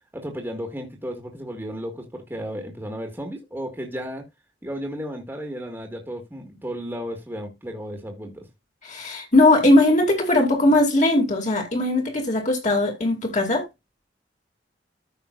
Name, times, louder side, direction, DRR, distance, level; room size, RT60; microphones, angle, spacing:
voice 1, 0.1-4.3 4.6-8.5, equal, 10° right, 1.7 m, -34 dB
voice 2, 8.8-13.7, left 2 dB, 45° left, 2.5 m, -19 dB
14.0 x 5.5 x 2.5 m
head